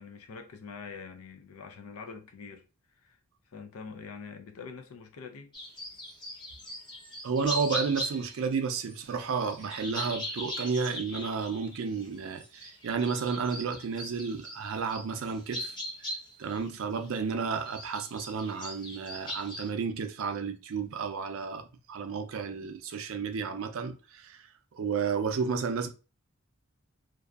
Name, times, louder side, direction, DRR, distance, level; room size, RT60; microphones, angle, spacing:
voice 1, 0.0-2.6 3.0-3.2 3.5-5.5, left 5 dB, 85° left, 0.5 m, -44 dB
sound 1, 5.5-8.5 8.9-17.2 17.5-19.7, equal, 20° left, 0.6 m, -39 dB
voice 2, 7.2-16.1 16.4-24.4 24.7-25.9, right 5 dB, 70° right, 0.4 m, -32 dB
2.6 x 2.3 x 2.3 m
head